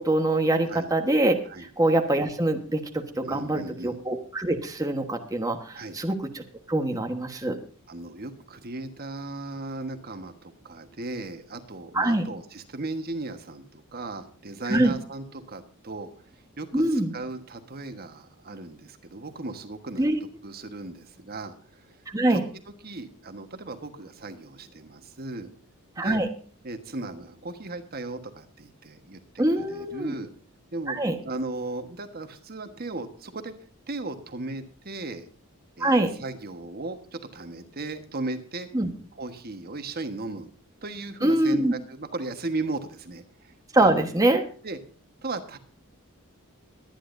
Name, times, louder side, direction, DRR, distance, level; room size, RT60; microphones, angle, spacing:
voice 1, 0.0-6.4 6.7-7.6 11.9-12.2 14.7-14.9 16.7-17.1 20.0-20.2 22.1-22.4 26.0-26.3 29.4-30.1 30.9-31.2 35.8-36.1 38.7-38.9 41.2-41.7 43.7-44.4, right 1 dB, 15° right, 4 dB, 1.3 m, -24 dB
voice 2, 3.2-4.0 5.7-6.0 7.9-20.0 20.4-22.0 22.3-22.4 22.8-25.5 26.0-26.2 26.6-30.3 30.7-31.0 31.2-33.5 33.9-35.3 35.8-38.7 39.1-40.5 40.8-44.0 44.6-44.8 45.2-45.6, right 2 dB, 45° right, 7 dB, 1.4 m, -36 dB
22.0 x 10.0 x 2.6 m, 0.43 s
head